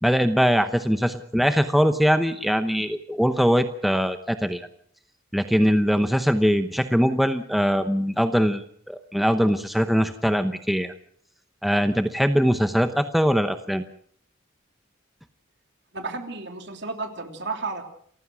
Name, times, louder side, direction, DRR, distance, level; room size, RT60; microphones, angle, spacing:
voice 1, 0.0-4.7 5.3-10.9 11.6-13.8, equal, ahead, 8 dB, 0.8 m, -22 dB
voice 2, 15.9-17.8, right 3 dB, 60° right, 5 dB, 3.1 m, -32 dB
28.0 x 15.5 x 6.2 m, 0.63 s
head